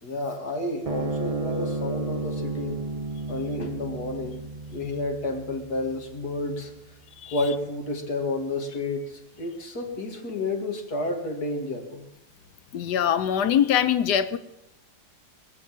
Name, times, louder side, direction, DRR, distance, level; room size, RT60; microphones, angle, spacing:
voice 1, 0.0-2.8 3.3-4.4 4.7-7.0 7.3-12.1, left 2 dB, 65° left, 4 dB, 2.6 m, -31 dB
sound 1, 0.8-7.5, right 2 dB, 30° right, 0.7 m, -33 dB
voice 2, 12.7-14.4, left 9 dB, 85° left, 12 dB, 1.4 m, -23 dB
22.5 x 7.9 x 7.5 m, 0.86 s
omnidirectional pair, 1.8 m